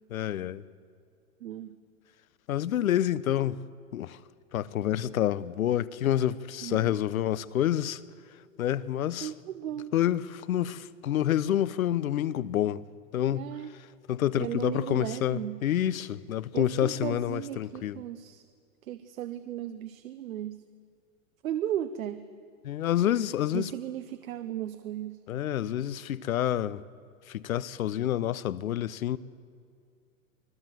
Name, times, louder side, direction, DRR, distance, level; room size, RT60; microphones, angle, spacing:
voice 1, 0.1-0.6 2.5-3.6 3.9-4.2 4.5-8.0 8.6-9.3 9.9-12.8 13.1-13.5 14.1-18.0 22.6-23.7 25.3-26.8 27.3-29.2, left 11 dB, 85° left, 1.0 m, -28 dB
voice 2, 1.4-1.8 6.6-7.0 9.2-9.9 13.3-13.7 14.4-15.6 16.5-18.4 18.8-20.6 21.4-22.3 23.5-25.2, right 11 dB, 80° right, 1.2 m, -36 dB
25.0 x 17.5 x 7.7 m
hypercardioid pair, 125°, 41 cm